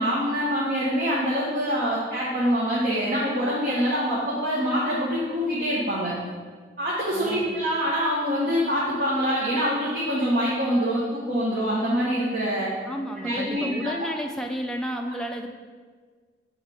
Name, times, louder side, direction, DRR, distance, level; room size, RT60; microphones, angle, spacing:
voice 1, 0.0-6.1 6.8-12.7 13.2-13.9, equal, 45° right, -6 dB, 1.0 m, -25 dB
voice 2, 7.1-7.6 12.9-15.5, equal, 5° left, 2 dB, 0.3 m, -32 dB
7.4 x 3.2 x 4.8 m, 1.6 s
head